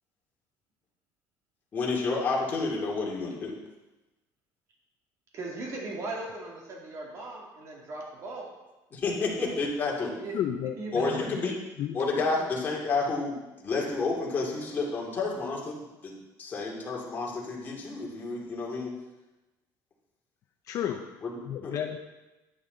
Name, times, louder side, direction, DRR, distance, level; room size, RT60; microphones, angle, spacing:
voice 1, 1.7-3.5 8.9-10.1 10.9-11.5 11.9-18.9 21.2-21.4 21.6-21.7, left 3 dB, 25° left, -3 dB, 2.5 m, -30 dB
voice 2, 5.3-8.4 9.1-9.5 10.2-10.3 10.8-11.2, right 2 dB, 40° right, -2 dB, 2.5 m, -38 dB
voice 3, 10.3-11.3 11.8-11.9 20.7-21.0 21.4-22.0, left 9 dB, 45° left, 4 dB, 0.6 m, -32 dB
10.5 x 9.4 x 4.0 m, 1.0 s
cardioid pair, 160°, 8 cm